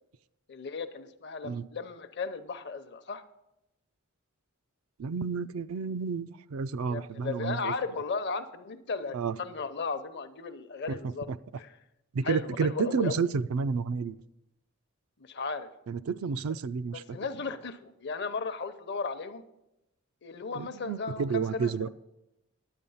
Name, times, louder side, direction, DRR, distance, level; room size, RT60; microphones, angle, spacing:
voice 1, 0.5-3.2 6.9-11.3 11.6-11.8 12.2-13.2 15.2-15.7 16.9-19.5 20.2-21.9, left 4 dB, 50° left, 10 dB, 0.7 m, -36 dB
voice 2, 5.0-7.7 9.1-9.3 10.9-11.0 11.3-11.4 12.1-14.2 15.9-17.2 20.5-21.9, right 5 dB, 75° right, 14 dB, 0.4 m, -31 dB
10.5 x 8.4 x 5.6 m, 0.91 s
head